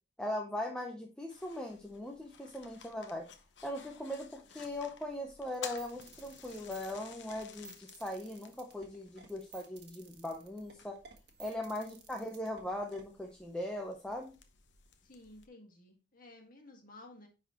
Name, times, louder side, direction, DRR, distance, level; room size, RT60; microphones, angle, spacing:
voice 1, 0.2-3.3 3.6-11.0 11.4-14.3, left 1 dB, 5° left, 1 dB, 0.7 m, -40 dB
sound 1, 1.3-15.5, left 7 dB, 65° left, 0.8 m, -54 dB
sound 2, 5.5-13.0, right 5 dB, 60° right, 1.3 m, -54 dB
voice 2, 15.0-17.3, left 2 dB, 50° left, 2 dB, 1.8 m, -55 dB
9.8 x 4.1 x 2.9 m, 0.30 s
head